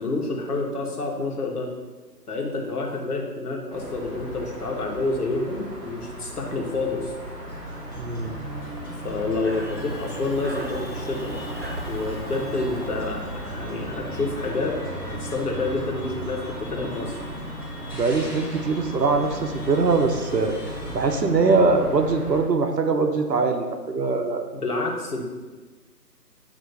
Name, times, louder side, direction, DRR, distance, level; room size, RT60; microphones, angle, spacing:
voice 1, 0.0-1.7 2.3-7.1 9.0-11.3 11.9-14.8 15.0-17.2 24.5-25.2, left 3 dB, 65° left, -1 dB, 1.4 m, -28 dB
sound 1, 3.7-22.4, right 1 dB, 25° right, 1.2 m, -37 dB
sound 2, 7.5-21.2, equal, 15° left, 0.9 m, -40 dB
voice 2, 8.0-8.4 17.9-20.6 20.9-24.5, right 4 dB, 75° right, 5 dB, 0.9 m, -22 dB
Breathing, 9.1-14.0, right 1 dB, 40° right, 0.4 m, -38 dB
8.2 x 3.1 x 4.1 m, 1.3 s
figure-of-eight pair, 145°, 49 cm